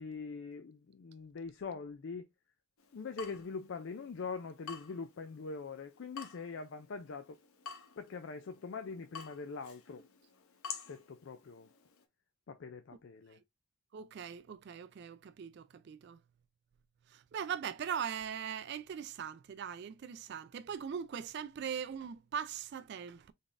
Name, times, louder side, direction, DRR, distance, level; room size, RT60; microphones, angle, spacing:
voice 1, 0.0-2.3 2.9-7.4 8.0-10.0 10.9-11.7 12.5-13.4, left 4 dB, 60° left, 0.4 m, -43 dB
Water tap faucet / Drip, 2.8-12.0, left 6 dB, 80° left, 0.8 m, -51 dB
voice 2, 13.9-16.2 17.1-23.3, right 8 dB, 50° right, 0.3 m, -40 dB
3.9 x 3.5 x 2.5 m
head